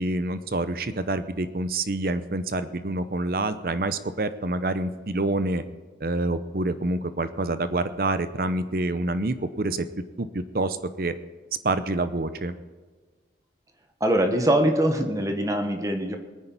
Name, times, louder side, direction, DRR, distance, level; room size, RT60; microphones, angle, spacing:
voice 1, 0.0-5.6 6.0-9.9 10.2-11.2 11.6-12.5, right 2 dB, 55° right, 12 dB, 0.7 m, -27 dB
voice 2, 14.0-16.2, right 1 dB, 20° right, 5 dB, 1.3 m, -23 dB
22.0 x 9.8 x 4.1 m, 1.4 s
head